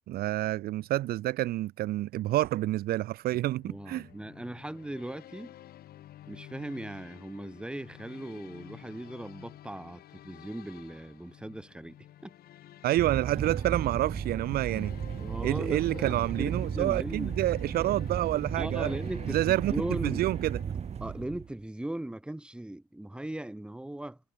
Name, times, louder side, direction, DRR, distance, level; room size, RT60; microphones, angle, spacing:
voice 1, 0.1-4.1 12.8-14.9 15.4-18.9 19.3-19.7 20.0-20.6, right 15 dB, 65° right, 0.5 m, -28 dB
sound 1, 3.6-21.3, left 13 dB, 65° left, 3.4 m, -50 dB
voice 2, 3.6-5.5 6.3-12.3 15.2-17.4 18.6-20.3 21.0-24.2, right 1 dB, 5° right, 1.5 m, -38 dB
sound 2, 13.0-21.5, right 7 dB, 40° right, 2.5 m, -35 dB
cardioid pair, 110°, 17 cm